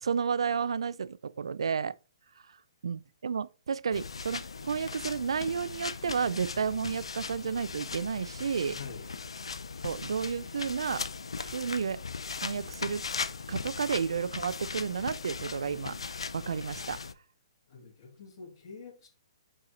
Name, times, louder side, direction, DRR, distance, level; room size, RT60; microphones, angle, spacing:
voice 1, 0.0-2.0 2.8-8.8 9.8-11.1 11.4-12.0 12.4-13.0 13.5-16.0 16.3-17.0, right 6 dB, 75° right, 0.4 m, -32 dB
sound 1, 3.9-17.1, left 5 dB, 85° left, 0.5 m, -39 dB
voice 2, 8.7-9.1 17.7-19.1, left 5 dB, 45° left, 2.1 m, -46 dB
5.8 x 4.7 x 3.9 m
hypercardioid pair, 135°, 3 cm